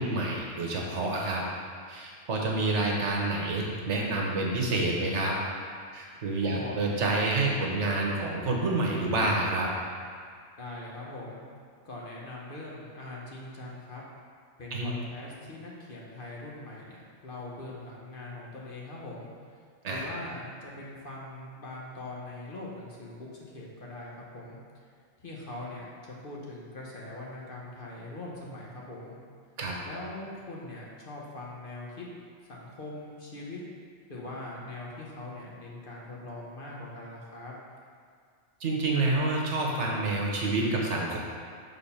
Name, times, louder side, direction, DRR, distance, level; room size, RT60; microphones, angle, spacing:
voice 1, 0.0-1.4 1.9-5.4 5.9-9.7 14.7-14.9 19.8-20.1 29.6-29.7 38.6-41.2, right 2 dB, 70° right, -2 dB, 1.3 m, -28 dB
voice 2, 6.4-6.8 10.6-11.4 11.8-14.0 14.6-19.3 19.9-24.6 25.2-29.2 29.8-32.1 32.4-33.6 34.1-37.5, left 2 dB, 50° left, -4 dB, 1.2 m, -42 dB
6.7 x 3.8 x 5.6 m, 2.1 s
omnidirectional pair, 1.2 m